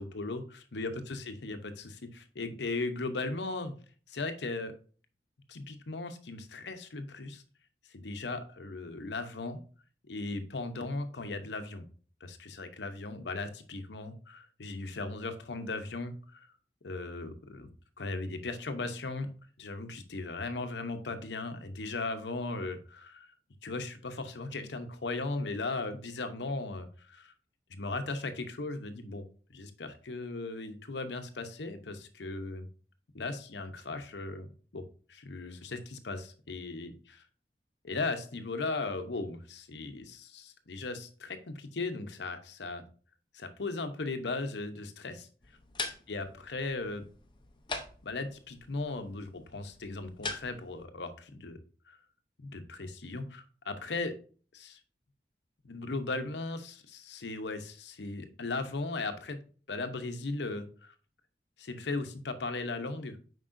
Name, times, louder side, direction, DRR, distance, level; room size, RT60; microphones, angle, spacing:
voice 1, 0.0-0.4 0.7-3.7 4.1-4.7 5.5-7.4 7.9-9.6 10.1-11.9 12.2-16.5 16.8-17.7 18.0-19.3 19.6-23.3 23.6-27.3 27.7-29.2 29.5-32.7 33.1-34.5 34.7-34.8 35.1-37.2 37.8-42.9 43.3-45.3 46.1-47.1 48.0-51.6 51.9-52.0 52.4-54.2 54.5-54.8 55.6-59.4 59.7-60.9 61.6-63.2, left 3 dB, 80° left, 8 dB, 0.8 m, -37 dB
sound 1, 45.4-50.8, left 3 dB, 25° left, 0.7 m, -43 dB
7.5 x 5.3 x 2.6 m, 0.41 s
head